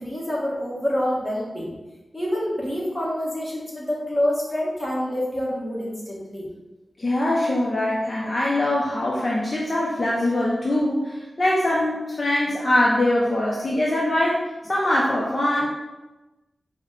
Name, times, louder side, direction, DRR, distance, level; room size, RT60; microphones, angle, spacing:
voice 1, 0.0-1.7 2.1-6.5, left 1 dB, 10° left, -6 dB, 1.3 m, -27 dB
voice 2, 7.0-15.7, left 1 dB, 40° left, -5 dB, 0.6 m, -22 dB
4.6 x 2.2 x 3.7 m, 1.1 s
wide cardioid pair, 90°, 0 cm